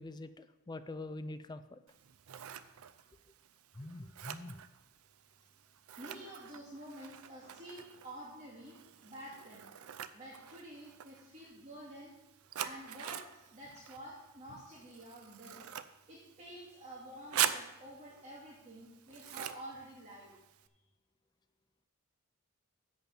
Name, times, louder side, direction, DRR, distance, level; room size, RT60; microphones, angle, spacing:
voice 1, 0.0-1.8 3.8-4.6 6.1-6.2, left 2 dB, 20° left, 11 dB, 0.4 m, -45 dB
Scissors, 1.9-20.7, right 10 dB, 75° right, 0.5 m, -44 dB
voice 2, 6.0-8.8 9.0-9.6 10.1-12.1 12.5-15.7 16.1-20.3, right 1 dB, 30° right, -8 dB, 2.4 m, -49 dB
10.5 x 4.4 x 7.3 m, 0.97 s
head